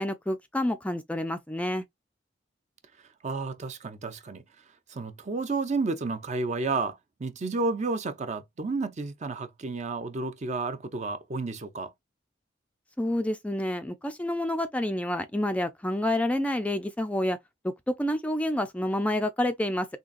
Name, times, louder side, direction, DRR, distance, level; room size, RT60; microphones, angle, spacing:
voice 1, 0.0-1.8 13.0-17.4 17.6-19.9, left 1 dB, 5° left, 0.4 m, -28 dB
voice 2, 3.2-4.4 4.9-11.9, right 3 dB, 40° right, 0.6 m, -31 dB
3.8 x 3.2 x 2.4 m
head